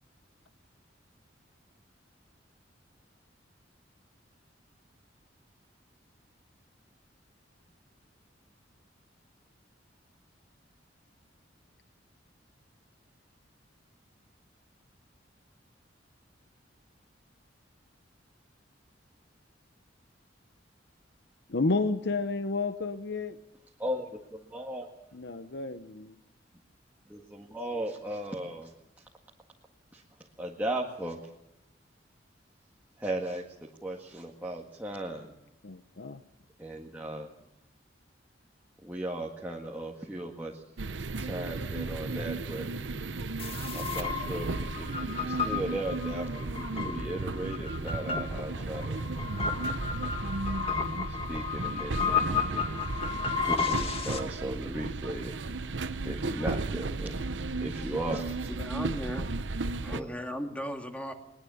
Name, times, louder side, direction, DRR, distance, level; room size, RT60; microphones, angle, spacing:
voice 1, 21.5-23.4 25.1-26.1 35.6-36.2, left 3 dB, 65° left, 11 dB, 0.9 m, -31 dB
voice 2, 23.8-24.9 27.1-28.7 29.9-30.0 30.4-31.2 33.0-33.4 33.8-35.3 36.6-37.3 38.8-40.6 41.1-42.7 43.6-49.0 51.1-52.6 53.1-55.3 56.1-57.1 57.6-58.5 59.9-60.1, right 1 dB, 10° right, -2 dB, 1.9 m, -37 dB
sound 1, 40.8-60.0, right 3 dB, 75° right, 0.9 m, -35 dB
sound 2, 43.4-54.2, left 5 dB, 30° left, 2.2 m, -33 dB
voice 3, 58.5-59.3 59.8-61.1, equal, 5° left, 4 dB, 2.3 m, -37 dB
21.0 x 20.5 x 7.1 m, 0.88 s
head